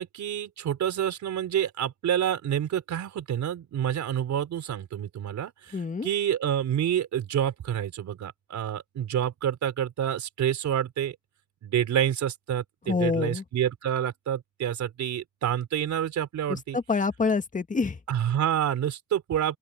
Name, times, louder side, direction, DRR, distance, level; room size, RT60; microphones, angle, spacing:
voice 1, 0.0-5.8 6.0-11.2 11.6-16.8 18.1-19.6, right 10 dB, 70° right, 4.3 m, -28 dB
voice 2, 5.7-6.1 12.9-13.4 16.5-18.0, left 4 dB, 25° left, 1.8 m, -27 dB
open air
cardioid pair, 90°, 30 cm